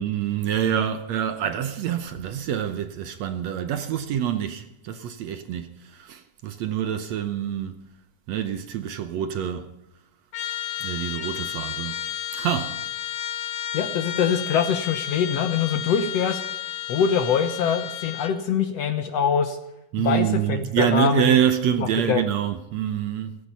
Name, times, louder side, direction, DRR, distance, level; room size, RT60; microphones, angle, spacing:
voice 1, 0.0-7.8 8.3-9.7 10.8-12.0 12.3-12.8 19.9-23.4, right 9 dB, 70° right, 1.9 m, -26 dB
Trumpet, 10.3-18.4, left 11 dB, 80° left, 2.8 m, -32 dB
voice 2, 13.7-16.4 16.9-19.6 20.0-21.3 21.8-22.2, left 7 dB, 65° left, 1.9 m, -24 dB
15.5 x 14.5 x 5.5 m
omnidirectional pair, 3.7 m